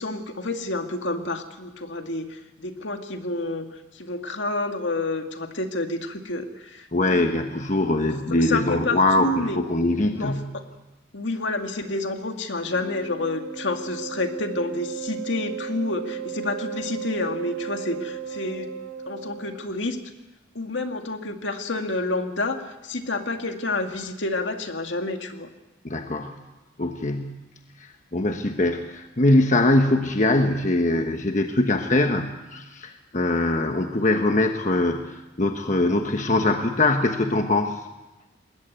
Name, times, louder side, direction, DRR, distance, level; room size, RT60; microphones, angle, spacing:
voice 1, 0.0-7.3 8.0-8.1 8.4-9.6 10.1-10.6 11.1-18.7 19.1-20.0 20.5-25.5, left 2 dB, 65° left, 5 dB, 2.1 m, -29 dB
voice 2, 6.9-10.5 25.8-26.3 26.8-27.4 28.1-35.0 35.4-37.8, left 2 dB, 40° left, 5 dB, 1.2 m, -22 dB
Wind instrument woodwind instrument, 12.6-19.7, right 7 dB, 75° right, 5.3 m, -35 dB
21.5 x 17.5 x 9.4 m, 1.1 s
head